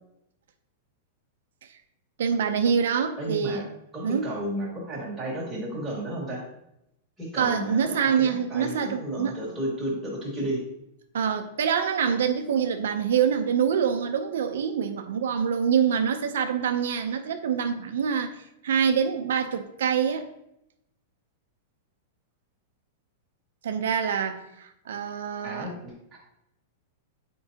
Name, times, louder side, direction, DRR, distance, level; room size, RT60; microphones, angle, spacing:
voice 1, 2.2-3.7 4.0-4.3 7.4-9.4 11.1-18.3 18.6-20.3 23.6-25.7, right 7 dB, 85° right, 0.5 m, -25 dB
voice 2, 3.2-3.6 3.9-6.5 7.2-10.6 25.4-26.2, right 1 dB, 5° right, 1.9 m, -33 dB
7.8 x 4.6 x 2.8 m
supercardioid pair, 170°, 0 cm